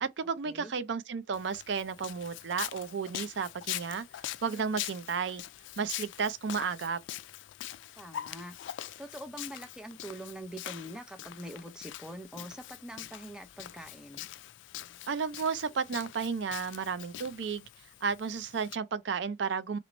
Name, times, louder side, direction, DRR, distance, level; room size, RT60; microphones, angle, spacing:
voice 1, 0.0-4.0 4.4-5.4 5.8-7.0 15.1-17.6 18.0-19.8, right 5 dB, 70° right, 0.4 m, -33 dB
Walk footsteps, 1.3-18.8, left 13 dB, 75° left, 0.3 m, -43 dB
voice 2, 8.0-8.5 9.0-14.3, right 1 dB, 5° right, 0.6 m, -44 dB
4.2 x 3.0 x 3.9 m
head